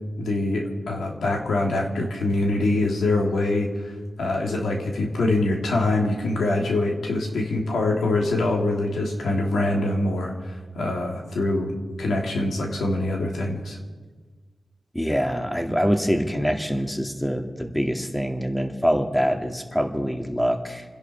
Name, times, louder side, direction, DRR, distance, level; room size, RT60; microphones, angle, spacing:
voice 1, 0.2-13.8, left 2 dB, 90° left, 0 dB, 2.9 m, -24 dB
voice 2, 14.9-20.8, equal, 5° left, 4 dB, 2.0 m, -24 dB
28.5 x 11.0 x 4.5 m, 1.4 s
cardioid pair, 60°, 0 cm